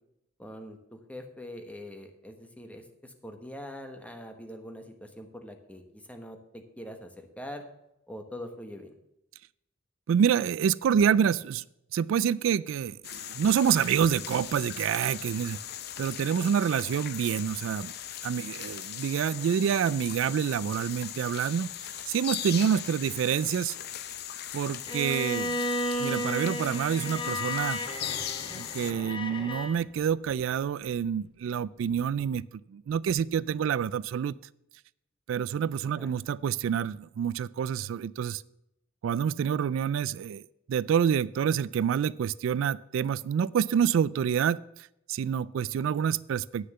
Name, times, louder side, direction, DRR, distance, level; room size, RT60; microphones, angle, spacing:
voice 1, 0.4-7.6 8.1-8.9 36.0-36.1, left 1 dB, 5° left, 5 dB, 1.2 m, -43 dB
voice 2, 10.1-11.6 11.9-15.6 16.0-17.9 18.2-21.7 22.1-23.8 24.5-25.7 26.0-27.8 28.5-32.4 32.7-34.4 35.3-38.4 39.0-40.4 40.7-46.7, right 8 dB, 90° right, 21 dB, 0.3 m, -27 dB
sound 1, 13.0-28.9, left 10 dB, 55° left, 0.6 m, -39 dB
Bowed string instrument, 24.9-29.8, left 1 dB, 25° left, 0.9 m, -33 dB
9.6 x 6.5 x 6.7 m, 0.85 s
head